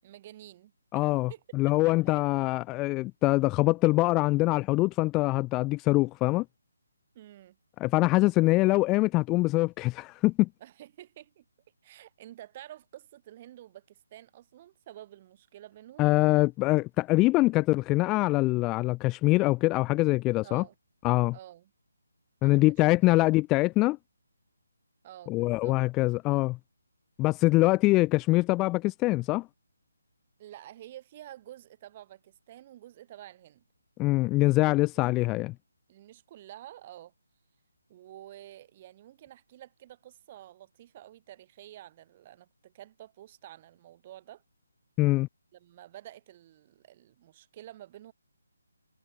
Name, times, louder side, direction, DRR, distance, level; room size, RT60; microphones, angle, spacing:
voice 1, 0.0-1.7 2.1-2.2 7.1-7.6 10.6-11.4 11.8-16.1 20.4-20.7 21.3-21.7 22.4-22.6 25.0-25.8 30.4-33.6 34.9-35.0 35.9-37.1 37.9-44.4 45.5-48.1, right 13 dB, 30° right, 7.3 m, -49 dB
voice 2, 0.9-6.4 7.8-10.5 16.0-20.6 21.0-21.3 22.4-24.0 25.3-26.6 27.2-29.5 34.0-35.5 45.0-45.3, left 20 dB, 15° left, 0.3 m, -24 dB
figure-of-eight pair, 150°, 0 cm